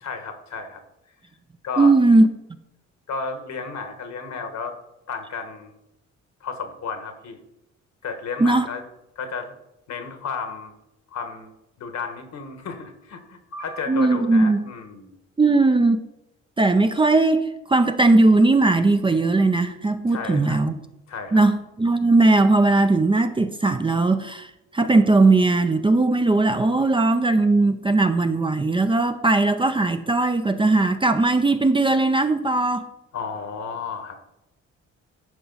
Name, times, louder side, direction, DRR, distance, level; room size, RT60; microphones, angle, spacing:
voice 1, 0.0-0.8 1.6-1.9 3.1-4.7 5.1-5.7 6.4-7.4 8.0-8.8 9.1-9.5 9.9-10.7 11.1-11.5 11.8-15.2 20.1-20.6 21.1-21.4 33.1-34.2, left 5 dB, 65° left, 7 dB, 1.4 m, -32 dB
voice 2, 1.8-2.3 8.4-8.7 13.9-14.6 15.4-16.0 16.6-20.8 21.3-32.9, right 2 dB, 15° right, 8 dB, 0.5 m, -18 dB
11.0 x 4.7 x 4.0 m, 0.88 s
cardioid pair, 90°, 30 cm